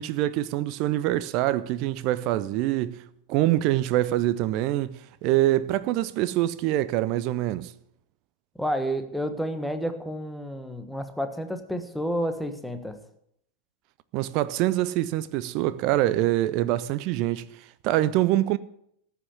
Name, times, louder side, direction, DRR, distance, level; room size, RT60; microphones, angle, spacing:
voice 1, 0.0-3.0 3.3-7.7 14.1-18.6, right 15 dB, 40° right, 0.5 m, -25 dB
voice 2, 8.6-13.0, equal, ahead, 1.4 m, -30 dB
14.0 x 5.8 x 9.5 m
figure-of-eight pair, 90°, 0 cm